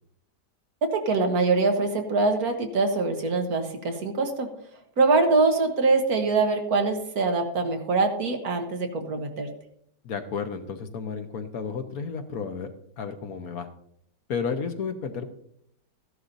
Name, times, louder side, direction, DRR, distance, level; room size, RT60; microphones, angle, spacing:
voice 1, 0.9-4.5 5.0-9.5, right 3 dB, 60° right, 5 dB, 1.7 m, -23 dB
voice 2, 10.0-12.7 13.0-13.7 14.3-15.3, left 5 dB, 60° left, 7 dB, 1.3 m, -32 dB
14.5 x 11.0 x 2.6 m, 0.70 s
omnidirectional pair, 1.8 m